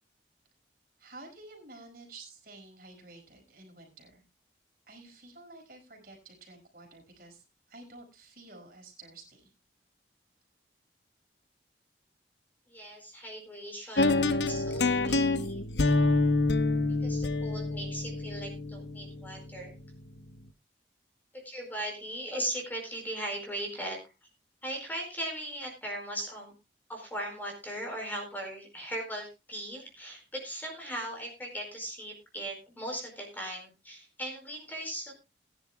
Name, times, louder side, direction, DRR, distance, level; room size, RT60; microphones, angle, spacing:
voice 1, 1.0-4.2 4.9-7.4 7.7-9.5, right 2 dB, 55° right, 1 dB, 5.2 m, -51 dB
voice 2, 12.7-15.6 17.0-19.7 21.4-24.0 24.6-26.5 26.9-35.1, right 1 dB, 10° left, 1 dB, 4.7 m, -38 dB
sound 1, 14.0-20.0, left 2 dB, 75° left, 1.0 m, -27 dB
21.0 x 10.5 x 2.2 m, 0.26 s
head